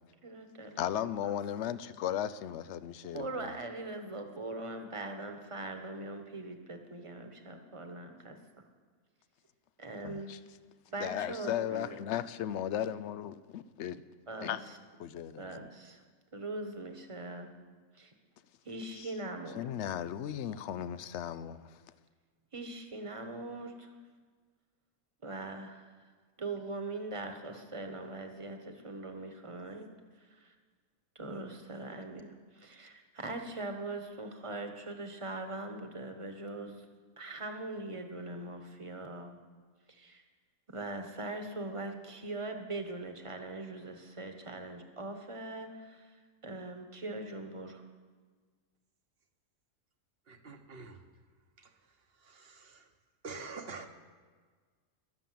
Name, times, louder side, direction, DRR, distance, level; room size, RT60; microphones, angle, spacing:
voice 1, 0.2-0.8 1.2-1.4 1.6-1.8 3.1-8.4 9.8-10.3 10.9-12.0 14.3-14.6 15.4-16.0 16.3-17.5 17.9-18.1 18.6-19.6 22.5-23.9 25.2-25.9 26.4-29.9 31.1-32.3 33.1-36.9 37.2-39.3 39.9-40.2 40.7-46.2 46.4-47.8, right 2 dB, 25° right, 1.2 m, -41 dB
voice 2, 0.8-3.6 10.0-10.4 11.0-14.0 14.4-14.6 15.0-15.7 19.0-19.1 19.5-21.8, left 10 dB, 65° left, 0.8 m, -36 dB
voice 3, 50.3-51.1 51.6-52.9 53.2-53.9, right 4 dB, 50° right, 1.2 m, -47 dB
21.0 x 7.1 x 7.6 m
omnidirectional pair, 1.4 m